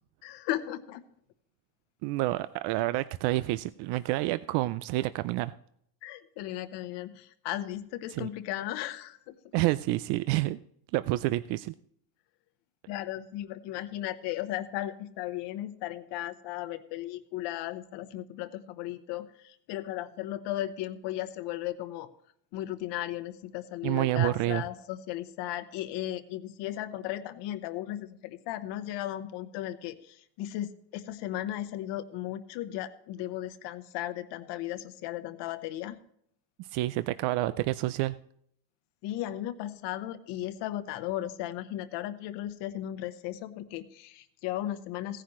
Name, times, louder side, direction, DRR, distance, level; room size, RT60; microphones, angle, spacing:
voice 1, 0.2-1.0 6.0-9.7 12.9-22.1 22.5-36.0 39.0-45.2, left 13 dB, 85° left, 11 dB, 1.1 m, -36 dB
voice 2, 2.0-5.5 8.2-8.3 9.5-10.6 10.9-11.7 23.8-24.6 36.6-38.1, right 17 dB, 75° right, 14 dB, 0.5 m, -28 dB
16.5 x 10.0 x 3.1 m, 0.69 s
cardioid pair, 155°, 41 cm